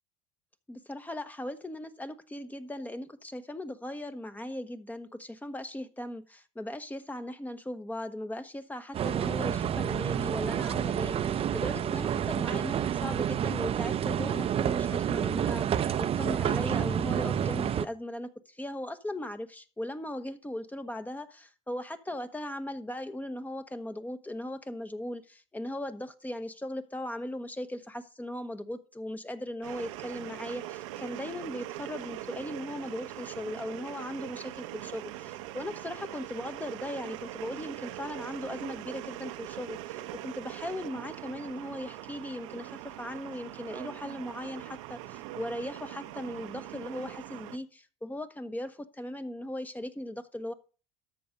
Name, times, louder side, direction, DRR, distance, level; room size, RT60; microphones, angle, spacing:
voice 1, 0.7-50.5, left 1 dB, 10° left, 1.0 m, -38 dB
sound 1, 8.9-17.9, right 9 dB, 40° right, 0.7 m, -29 dB
sound 2, 29.6-47.6, right 14 dB, 80° right, 1.0 m, -42 dB
13.0 x 6.1 x 5.3 m
supercardioid pair, 95°, 16 cm